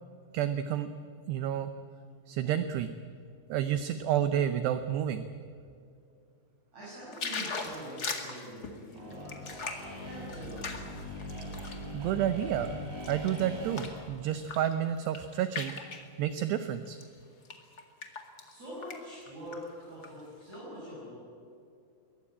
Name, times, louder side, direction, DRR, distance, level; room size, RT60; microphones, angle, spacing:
voice 1, 0.3-0.9 1.3-1.7 2.3-2.9 3.5-5.2 11.9-12.8 13.1-15.7 16.2-17.0, right 10 dB, 75° right, 10 dB, 2.6 m, -30 dB
voice 2, 6.7-10.7 18.4-21.1, equal, 35° right, -9 dB, 8.7 m, -44 dB
sound 1, 7.1-11.9 12.3-14.0 14.4-14.7 15.0-16.1 16.8-17.0 17.4-18.5 18.8-19.0 19.3-20.1 20.5-20.6, left 4 dB, 85° left, 0.8 m, -39 dB
sound 2, 9.0-14.0, left 1 dB, 55° right, 7.1 m, -41 dB
22.5 x 18.5 x 8.6 m, 2.5 s
omnidirectional pair, 5.4 m